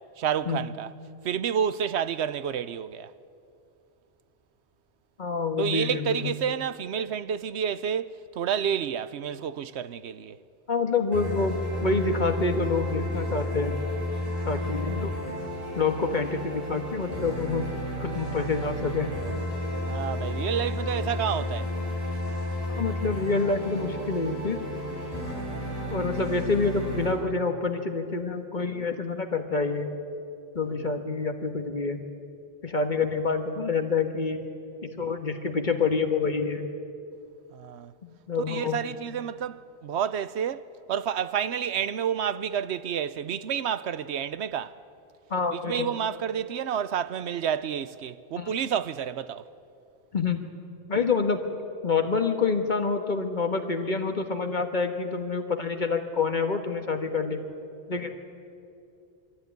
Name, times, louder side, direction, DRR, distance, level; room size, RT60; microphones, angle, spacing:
voice 1, 0.2-0.9 1.2-3.1 5.6-10.4 19.9-21.7 25.2-25.6 30.7-30.8 37.5-37.9 38.5-44.8 45.5-49.5, right 8 dB, 85° right, 1.0 m, -30 dB
voice 2, 5.2-6.3 10.7-13.7 14.4-15.1 15.7-17.7 18.0-19.1 22.7-24.6 25.9-29.9 30.5-32.0 32.6-34.4 34.8-36.7 38.0-38.8 45.3-45.9 48.4-48.5 50.1-50.4 50.9-51.4 51.8-57.4 57.9-58.1, left 4 dB, 45° left, 1.5 m, -27 dB
sound 1, 11.1-27.1, left 1 dB, 35° right, 6.1 m, -32 dB
23.5 x 14.5 x 9.5 m
omnidirectional pair, 1.1 m